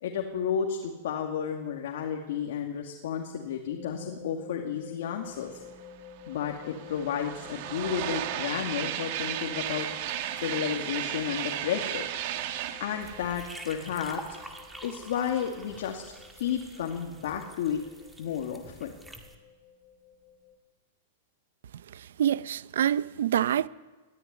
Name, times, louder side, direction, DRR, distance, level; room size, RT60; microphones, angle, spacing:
voice 1, 0.0-5.6 6.3-9.9 10.4-12.1 12.8-14.4 14.8-16.0 16.4-17.8 18.2-18.9, left 8 dB, 65° left, 2.5 m, -32 dB
sound 1, 3.7-20.6, left 7 dB, 15° left, 5.6 m, -51 dB
sound 2, 5.8-5.9 6.1-14.8, right 12 dB, 45° right, 1.7 m, -35 dB
sound 3, 13.0-19.4, right 1 dB, 5° right, 1.9 m, -47 dB
voice 2, 22.2-23.7, right 10 dB, 75° right, 0.7 m, -26 dB
21.0 x 14.0 x 9.7 m
supercardioid pair, 160°, 0 cm